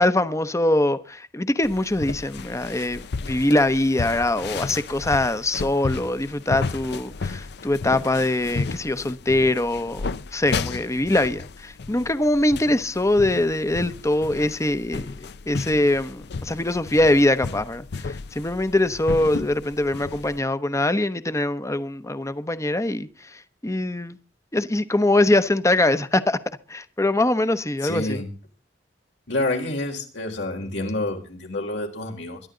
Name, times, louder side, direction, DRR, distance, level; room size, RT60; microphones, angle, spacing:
voice 1, 0.0-24.2 24.5-26.4 26.7-28.2, left 1 dB, 15° left, 0.8 m, -23 dB
sound 1, 1.6-20.4, left 4 dB, 65° left, 0.6 m, -34 dB
voice 2, 27.8-28.3 29.3-32.4, left 2 dB, 85° left, 4.2 m, -28 dB
22.5 x 11.5 x 3.9 m
head